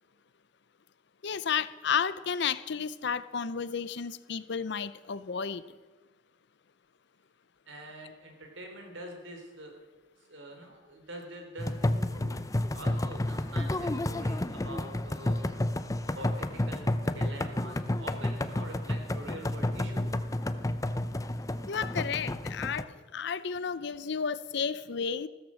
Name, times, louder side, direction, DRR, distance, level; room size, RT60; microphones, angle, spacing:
voice 1, 1.2-5.6 21.7-25.3, left 6 dB, 65° left, 16 dB, 0.6 m, -32 dB
voice 2, 7.7-9.7 10.3-12.4 12.7-15.5 16.0-20.1, right 1 dB, 80° right, 3 dB, 3.7 m, -45 dB
sound 1, 11.6-22.8, left 1 dB, 20° left, 0.6 m, -31 dB
15.5 x 13.5 x 6.3 m, 1.4 s
head